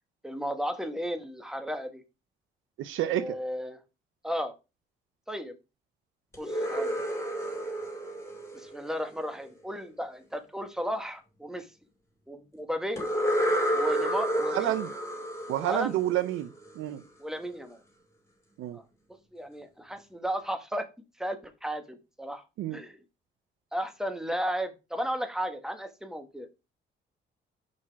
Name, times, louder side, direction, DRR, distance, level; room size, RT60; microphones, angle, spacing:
voice 1, 0.2-2.0 3.0-3.8 4.2-4.5 5.3-5.5 6.4-7.0 8.5-11.7 12.3-13.0 13.7-14.7 15.6-16.0 17.2-17.8 18.7-18.8 19.1-20.9 21.2-22.4 22.7-23.0 23.7-26.5, equal, 5° right, 1.3 m, -34 dB
voice 2, 2.8-3.4 14.5-14.9 15.5-17.0 18.6-18.8 22.6-22.8, right 13 dB, 85° right, 0.6 m, -29 dB
sound 1, 6.3-9.3 13.0-16.7, equal, 15° left, 2.3 m, -30 dB
5.6 x 5.1 x 4.5 m
cardioid pair, 90°, 20 cm